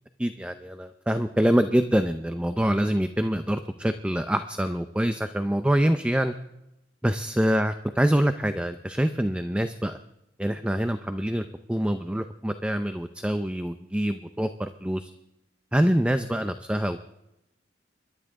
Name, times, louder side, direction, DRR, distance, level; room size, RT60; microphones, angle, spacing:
voice 1, 0.2-6.3 7.0-10.0 10.4-15.1 15.7-17.0, equal, 5° right, 9 dB, 0.5 m, -25 dB
26.0 x 12.5 x 3.7 m, 0.90 s
head